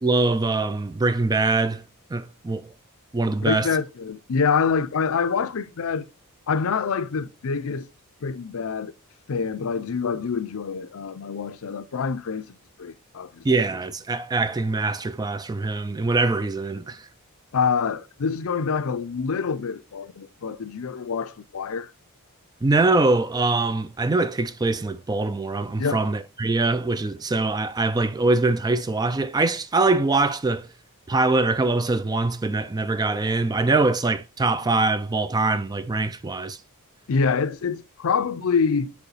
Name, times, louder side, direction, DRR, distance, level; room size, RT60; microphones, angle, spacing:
voice 1, 0.0-1.8 2.1-2.7 3.1-3.7 13.4-17.1 22.6-30.7 31.1-36.6, right 3 dB, 20° right, 0.4 m, -23 dB
voice 2, 3.4-6.1 6.5-7.9 8.2-8.9 9.3-13.4 17.5-21.9 25.8-26.0 37.1-38.9, left 5 dB, 65° left, 0.5 m, -26 dB
7.0 x 4.5 x 4.0 m
head